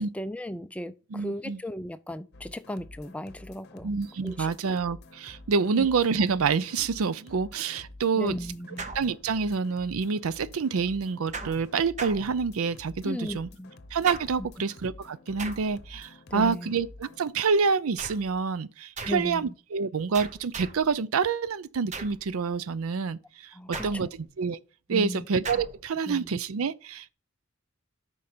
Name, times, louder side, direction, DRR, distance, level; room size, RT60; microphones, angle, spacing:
voice 1, 0.0-3.9 4.2-4.5 5.8-5.9 8.2-8.9 13.0-13.7 16.3-16.7 19.0-19.5 23.6-24.1 24.9-25.3 26.1-26.4, equal, 5° left, 0.4 m, -36 dB
voice 2, 1.1-1.6 3.8-8.4 8.9-13.5 13.9-23.2 23.7-24.6 24.9-27.1, right 5 dB, 85° right, 0.5 m, -27 dB
sound 1, 2.3-17.3, left 2 dB, 50° left, 0.9 m, -49 dB
sound 2, 8.8-9.6 11.3-12.9 14.1-14.6 15.4-16.0 18.0-18.4 19.0-19.4 20.1-21.0 21.9-22.3 23.7-24.4 25.5-25.9, right 4 dB, 35° right, 0.8 m, -40 dB
8.5 x 5.4 x 4.3 m
head